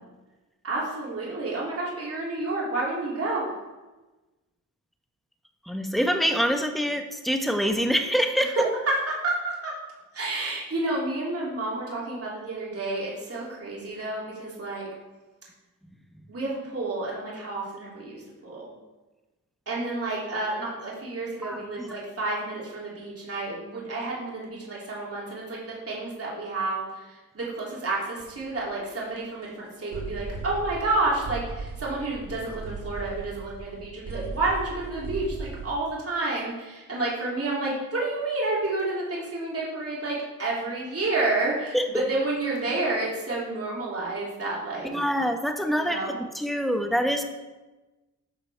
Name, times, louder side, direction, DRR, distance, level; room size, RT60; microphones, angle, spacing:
voice 1, 0.6-3.5 8.4-8.5 8.9-9.7 10.1-14.9 16.3-18.6 19.7-44.9 45.7-46.1, right 2 dB, 45° right, -5 dB, 2.7 m, -30 dB
voice 2, 5.7-8.7 21.4-21.9 41.7-42.1 44.9-47.2, equal, ahead, 5 dB, 1.0 m, -25 dB
sound 1, 28.2-28.5 29.0-29.1 29.4-29.5 29.9-35.7, right 4 dB, 75° right, 2.2 m, -37 dB
10.5 x 6.0 x 3.4 m, 1.1 s
cardioid pair, 65°, 33 cm